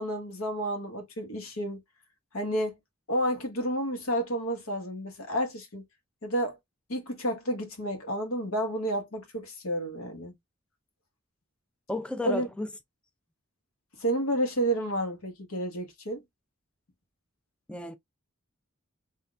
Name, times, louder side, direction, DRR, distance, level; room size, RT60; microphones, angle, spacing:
voice 1, 0.0-1.8 2.3-2.7 3.1-5.8 6.2-6.6 6.9-10.3 12.2-12.5 14.0-16.2, right 1 dB, 85° left, 1.2 m, -30 dB
voice 2, 11.9-12.7 17.7-18.0, left 1 dB, 5° left, 0.4 m, -33 dB
3.9 x 2.5 x 2.2 m
head